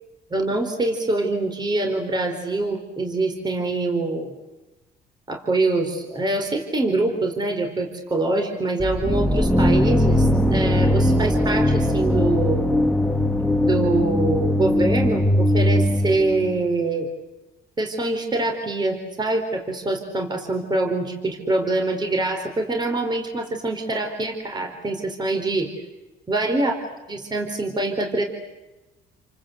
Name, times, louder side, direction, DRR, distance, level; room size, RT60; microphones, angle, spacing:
voice 1, 0.3-4.3 5.3-12.7 13.6-17.1 17.8-25.7 26.3-26.8 27.1-28.2, right 2 dB, 25° right, 4 dB, 4.4 m, -24 dB
sound 1, 8.8-16.6, left 1 dB, ahead, 1.9 m, -20 dB
29.5 x 24.5 x 8.1 m, 1.1 s
cardioid pair, 110°, 17 cm